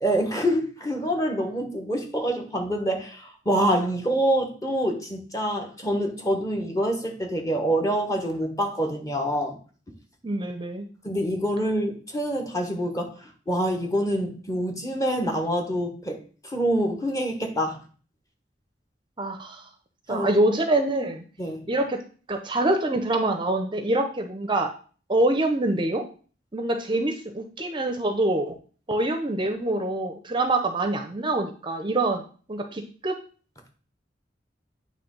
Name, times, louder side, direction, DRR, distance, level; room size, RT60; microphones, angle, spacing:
voice 1, 0.0-9.6 11.0-16.2 16.4-17.8 20.1-20.3 21.4-21.6, equal, 20° left, 3 dB, 1.3 m, -26 dB
voice 2, 10.2-10.9 19.2-19.7 20.1-21.2 21.7-22.0 22.3-24.7 25.1-26.0 26.5-28.6 28.9-32.2 32.5-33.2, right 2 dB, 25° right, 6 dB, 0.6 m, -25 dB
9.0 x 3.2 x 5.4 m, 0.40 s
head